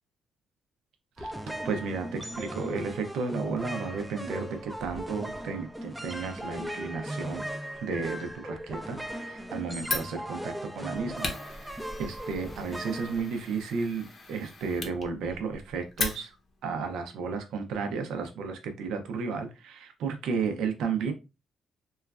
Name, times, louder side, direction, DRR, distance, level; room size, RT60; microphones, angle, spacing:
sound 1, 1.2-13.9, right 1 dB, 5° right, 0.4 m, -38 dB
voice 1, 1.2-7.4 7.7-16.4 16.6-21.1, right 5 dB, 85° right, 6 dB, 0.5 m, -33 dB
Fire, 9.8-16.6, left 3 dB, 45° left, 0.7 m, -38 dB
3.0 x 2.3 x 2.3 m, 0.27 s
cardioid pair, 90°, 0 cm